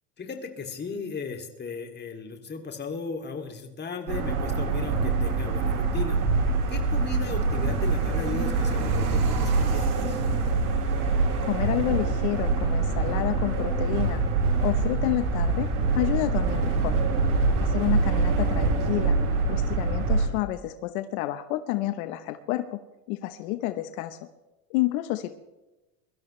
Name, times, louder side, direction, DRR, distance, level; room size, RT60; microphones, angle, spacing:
voice 1, 0.2-6.2 6.7-10.2, left 4 dB, 25° left, 4 dB, 2.7 m, -36 dB
sound 1, 4.1-20.3, right 3 dB, 85° right, 3.6 m, -25 dB
voice 2, 11.4-14.2 14.6-15.7 16.0-16.9 17.6-19.2 19.5-22.8 23.1-24.2 24.7-25.3, left 16 dB, 70° left, 9 dB, 1.1 m, -29 dB
23.5 x 13.0 x 3.3 m, 1.0 s
supercardioid pair, 115°, 43 cm